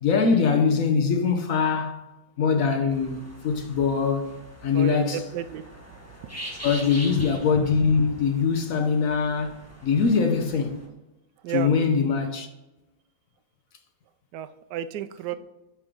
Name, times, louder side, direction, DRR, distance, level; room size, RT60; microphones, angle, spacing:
voice 1, 0.0-2.0 2.4-4.4 4.6-5.2 6.6-10.8 11.5-12.5, left 5 dB, 60° left, 1.0 m, -23 dB
sound 1, 2.9-10.8, right 1 dB, 10° left, 1.3 m, -43 dB
voice 2, 4.7-5.6 6.2-6.4 11.4-11.7 14.3-15.3, right 10 dB, 75° right, 1.1 m, -32 dB
9.5 x 3.4 x 6.1 m
omnidirectional pair, 1.9 m